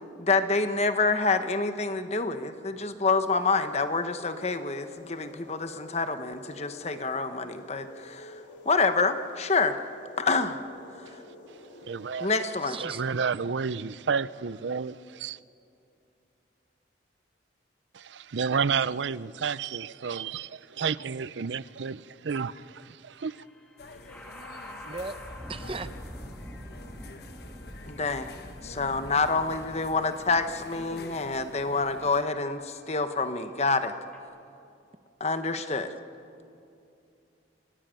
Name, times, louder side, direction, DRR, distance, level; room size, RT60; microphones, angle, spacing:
voice 1, 0.2-8.3 8.6-9.8 10.2-10.6 11.0-11.1 12.2-12.8 27.9-28.3 28.6-33.9 35.2-35.9, left 3 dB, 35° left, 1.2 m, -27 dB
sound 1, 3.0-13.0, left 2 dB, 90° left, 5.1 m, -49 dB
voice 2, 11.9-12.3 12.8-15.4 17.9-23.4, right 6 dB, 80° right, 0.5 m, -31 dB
voice 3, 12.6-13.1 24.8-25.2 25.5-26.0, right 3 dB, 30° right, 0.9 m, -37 dB
sound 2, 23.2-34.2, equal, 5° left, 2.9 m, -46 dB
sound 3, 23.8-32.2, left 2 dB, 60° left, 1.3 m, -48 dB
27.5 x 18.0 x 9.0 m
head